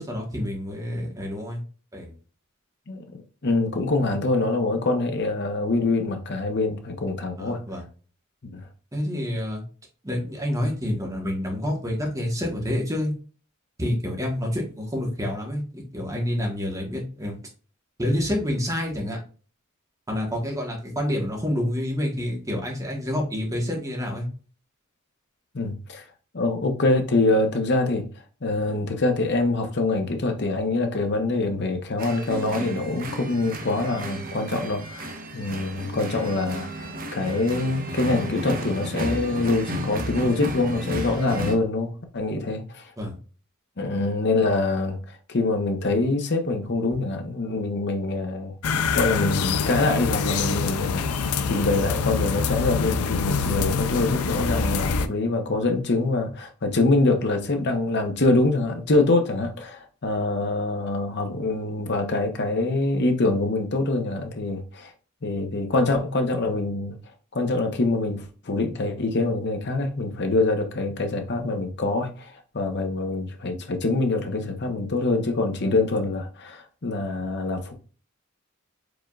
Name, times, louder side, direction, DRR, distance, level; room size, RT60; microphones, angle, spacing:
voice 1, 0.0-1.6 1.9-2.1 7.4-7.8 8.9-9.6 10.0-13.1 13.8-17.4 18.0-19.2 20.1-24.2 43.0-43.2, left 1 dB, 15° right, 1.3 m, -28 dB
voice 2, 2.9-7.6 8.4-8.6 25.5-26.0 26.3-28.1 28.4-42.9 43.8-48.5 49.0-51.1 51.5-64.9 65.2-66.9 67.3-77.7, left 2 dB, 50° left, 0.8 m, -25 dB
sound 1, 32.0-41.6, equal, 40° right, 0.7 m, -33 dB
sound 2, 48.6-55.1, left 5 dB, 90° left, 0.5 m, -25 dB
4.9 x 3.7 x 2.4 m
head